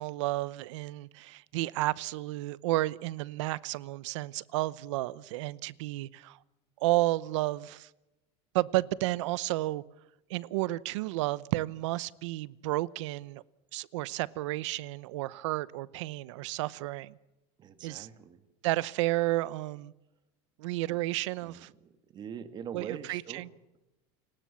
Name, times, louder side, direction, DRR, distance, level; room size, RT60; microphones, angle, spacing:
voice 1, 0.0-6.4 6.8-7.9 8.5-9.8 10.3-13.4 13.7-17.2 17.8-18.1 18.6-19.9 20.6-21.7 22.7-23.5, right 18 dB, 85° right, 0.8 m, -32 dB
voice 2, 17.6-18.4 20.9-21.0 21.4-21.8 22.1-23.8, right 8 dB, 30° right, 2.0 m, -43 dB
29.0 x 18.0 x 7.4 m
supercardioid pair, 155°, 15 cm